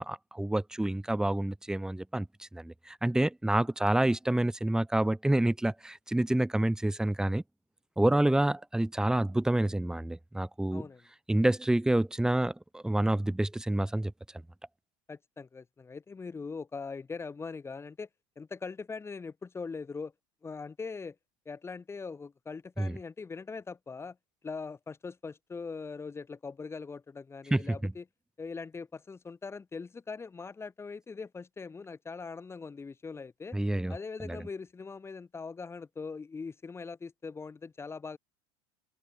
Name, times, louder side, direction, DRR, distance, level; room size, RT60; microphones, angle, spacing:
voice 1, 0.0-7.4 8.0-10.8 11.3-14.1 22.8-23.0 27.5-27.9 33.5-33.9 34.2-34.4, right 1 dB, 5° right, 2.6 m, -28 dB
voice 2, 10.7-11.0 15.1-18.1 18.4-20.1 20.4-21.2 21.4-24.2 24.4-28.0 28.4-33.6 33.9-38.2, left 4 dB, 15° left, 4.5 m, -41 dB
supercardioid pair, 140°, 16 cm